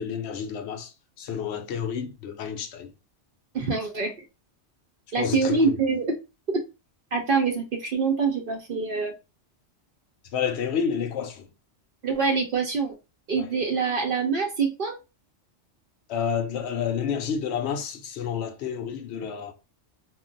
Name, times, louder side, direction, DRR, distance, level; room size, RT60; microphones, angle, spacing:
voice 1, 0.0-2.9 5.2-5.8 10.3-11.5 16.1-19.5, left 7 dB, 70° left, 0.8 m, -30 dB
voice 2, 3.5-4.1 5.1-6.1 6.5-6.6 7.1-9.1 12.0-12.9 13.3-14.9, right 4 dB, 55° right, 0.7 m, -25 dB
2.4 x 2.2 x 3.8 m
omnidirectional pair, 1.2 m